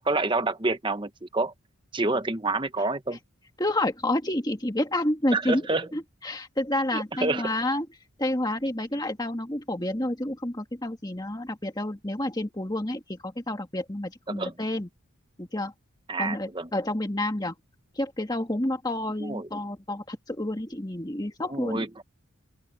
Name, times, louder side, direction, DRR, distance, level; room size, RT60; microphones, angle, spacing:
voice 1, 0.0-1.5 1.9-3.2 5.3-5.9 6.9-7.5 14.3-14.5 16.1-16.7 19.2-19.5 21.5-22.0, right 3 dB, 20° right, 1.0 m, -28 dB
voice 2, 3.6-5.7 5.9-7.9 8.2-14.9 15.4-15.7 16.2-17.5 18.0-21.9, left 1 dB, 20° left, 1.8 m, -29 dB
open air
head